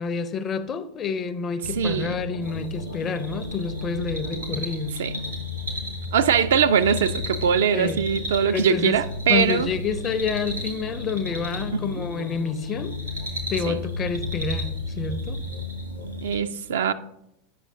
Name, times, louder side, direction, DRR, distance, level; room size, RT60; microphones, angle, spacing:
voice 1, 0.0-4.9 7.7-8.0 8.4-9.0 9.3-13.0 13.5-15.4, left 6 dB, 30° left, 0.5 m, -28 dB
sound 1, 1.6-16.3, left 3 dB, 75° left, 0.6 m, -35 dB
voice 2, 1.8-2.1 5.0-5.2 6.1-9.7 13.7-13.8 16.2-16.9, right 7 dB, 65° right, 0.3 m, -22 dB
sound 2, 2.4-16.4, right 1 dB, 85° right, 1.5 m, -36 dB
8.4 x 5.9 x 2.7 m
figure-of-eight pair, 85°, 0 cm